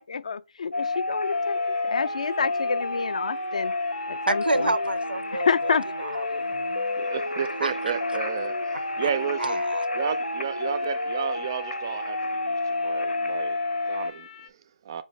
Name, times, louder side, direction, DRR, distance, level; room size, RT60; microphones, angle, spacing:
voice 1, 0.0-3.7 4.1-4.7 5.3-5.9, left 5 dB, 45° left, 0.3 m, -28 dB
sound 1, 0.7-14.1, left 2 dB, 90° left, 0.7 m, -29 dB
sound 2, 1.2-14.5, left 5 dB, 25° left, 0.7 m, -46 dB
voice 2, 4.3-6.6 7.6-7.7 9.4-9.8, right 2 dB, 90° right, 0.5 m, -29 dB
voice 3, 7.0-9.6 9.9-15.0, right 8 dB, 25° right, 0.4 m, -33 dB
5.5 x 2.8 x 3.2 m
figure-of-eight pair, 155°, 5 cm